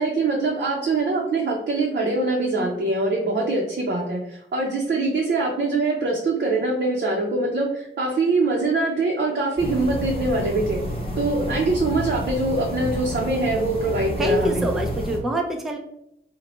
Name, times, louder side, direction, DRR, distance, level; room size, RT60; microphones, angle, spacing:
voice 1, 0.0-10.8 11.2-14.6, right 3 dB, 50° right, -2 dB, 0.5 m, -23 dB
sound 1, 9.6-15.2, equal, 25° left, 0.9 m, -30 dB
voice 2, 14.2-15.8, equal, ahead, 2 dB, 0.4 m, -25 dB
2.9 x 2.1 x 3.0 m, 0.75 s
wide cardioid pair, 90°, 21 cm